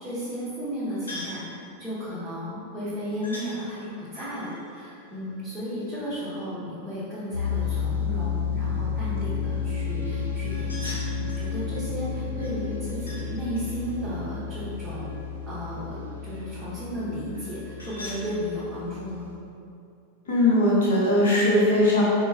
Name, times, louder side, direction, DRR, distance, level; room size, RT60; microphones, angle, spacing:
voice 1, 0.0-1.4 1.8-15.0 15.5-19.3, equal, 10° right, -12 dB, 0.9 m, -34 dB
sound 1, 1.1-1.5 3.2-3.5 4.1-5.9 10.4-11.5 12.4-13.3 13.5-15.4 17.3-18.2, left 1 dB, 75° left, 0.8 m, -42 dB
sound 2, 7.3-19.3, left 6 dB, 85° right, 0.5 m, -31 dB
voice 2, 20.3-22.0, left 1 dB, 55° left, -7 dB, 1.0 m, -20 dB
4.4 x 2.3 x 3.2 m, 2.6 s
figure-of-eight pair, 90°, 0 cm